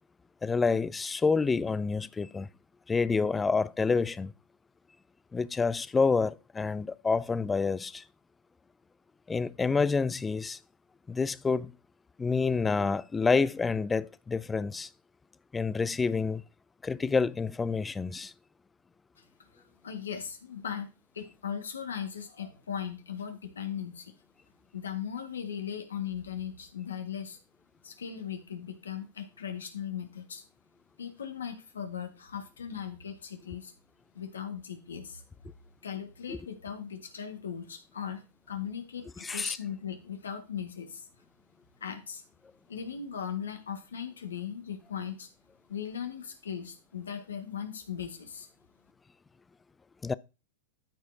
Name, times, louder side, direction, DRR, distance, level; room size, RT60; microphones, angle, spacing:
voice 1, 0.4-2.5 2.9-4.3 5.3-8.0 9.3-10.6 11.1-11.7 12.2-14.9 15.5-16.4 16.8-18.3 36.3-36.4 39.2-39.6 50.0-50.1, left 4 dB, 15° left, 0.4 m, -28 dB
voice 2, 19.5-20.9 21.1-24.1 24.7-27.4 27.8-30.4 31.0-33.7 34.1-35.2 35.8-41.1 41.8-42.2 42.7-45.3 45.7-48.5, left 8 dB, 80° left, 1.5 m, -38 dB
12.5 x 4.8 x 2.7 m
hypercardioid pair, 95°, 0 cm